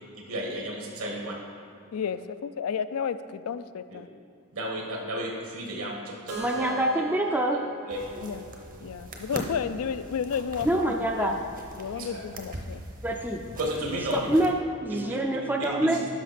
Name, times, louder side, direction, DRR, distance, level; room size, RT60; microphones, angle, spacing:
voice 1, 0.3-1.3 3.9-4.0 4.5-6.7 7.5-7.6 7.8-8.3 11.9-12.2 13.6-14.3 14.9-15.1 15.6-16.1, right 1 dB, 70° right, -1 dB, 1.7 m, -33 dB
voice 2, 1.9-4.1 8.2-8.4 8.8-11.4 11.8-12.8, left 7 dB, 75° left, 12 dB, 0.4 m, -32 dB
Keyboard (musical), 6.3-10.2, right 2 dB, 85° right, 1.9 m, -42 dB
voice 3, 6.4-7.6 10.7-11.3 13.0-13.4 14.1-14.5 14.8-16.0, right 1 dB, 10° right, 2 dB, 0.4 m, -25 dB
sound 1, 7.9-14.5, right 1 dB, 40° right, 0.8 m, -41 dB
10.5 x 6.0 x 4.2 m, 2.6 s
head